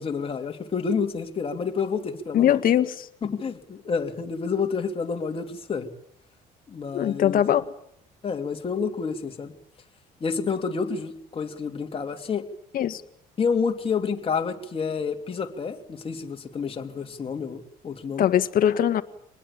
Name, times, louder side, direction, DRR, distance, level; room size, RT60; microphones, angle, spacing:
voice 1, 0.0-2.6 3.2-5.9 6.7-7.4 8.2-9.5 10.2-12.5 13.4-18.3, left 5 dB, 35° left, 4 dB, 3.2 m, -29 dB
voice 2, 2.3-3.1 6.9-7.7 12.7-13.0 18.2-19.0, left 10 dB, 60° left, 10 dB, 1.7 m, -21 dB
26.0 x 20.0 x 8.8 m, 0.70 s
cardioid pair, 110°, 17 cm